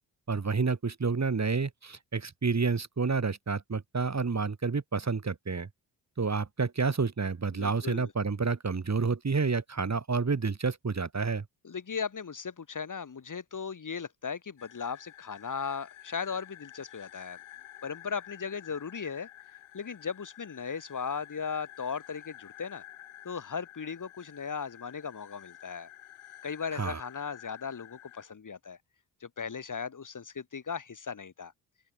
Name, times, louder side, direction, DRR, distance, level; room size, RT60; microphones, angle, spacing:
voice 1, 0.3-5.7 6.2-11.4 26.7-27.0, right 4 dB, 35° right, 2.9 m, -29 dB
voice 2, 7.5-8.1 11.6-17.4 17.8-19.3 19.7-22.8 23.2-25.9 26.4-28.8 29.2-31.5, left 6 dB, 40° left, 2.2 m, -37 dB
sound 1, 14.6-28.3, left 14 dB, 75° left, 4.7 m, -51 dB
open air
hypercardioid pair, 45°, 48 cm